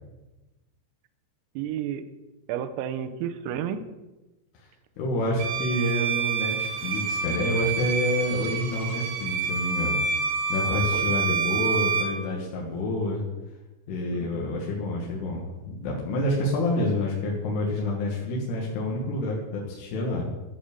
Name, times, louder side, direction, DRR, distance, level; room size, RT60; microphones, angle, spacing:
voice 1, 1.6-2.1 2.5-3.9 10.7-11.4 14.1-14.5, right 9 dB, 85° right, 10 dB, 3.3 m, -32 dB
voice 2, 5.0-10.0 10.5-13.2 13.9-20.3, left 1 dB, 65° left, -3 dB, 3.1 m, -28 dB
Bowed string instrument, 5.4-12.2, right 5 dB, 70° right, 3.3 m, -27 dB
13.5 x 4.9 x 6.6 m, 1.1 s
omnidirectional pair, 5.9 m